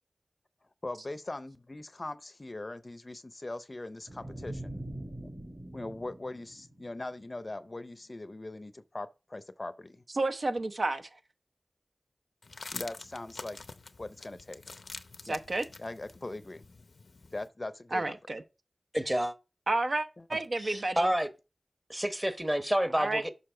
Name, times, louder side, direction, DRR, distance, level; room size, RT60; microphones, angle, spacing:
voice 1, 0.8-4.8 5.7-10.0 12.7-13.6 14.0-14.6 15.3-15.4 15.8-16.6 17.3-18.1 20.2-20.3, left 2 dB, 40° left, 0.6 m, -41 dB
sound 1, 4.1-7.3, right 1 dB, 40° right, 2.1 m, -43 dB
voice 2, 10.1-11.1 15.2-15.6 17.9-18.4 19.7-21.1 22.9-23.2, right 2 dB, 65° right, 0.7 m, -31 dB
sound 2, 12.4-17.5, left 3 dB, 90° left, 0.6 m, -46 dB
voice 3, 18.9-19.3 20.6-21.3 21.9-23.3, equal, 15° right, 0.9 m, -29 dB
6.7 x 5.5 x 3.7 m
wide cardioid pair, 55°, 0 cm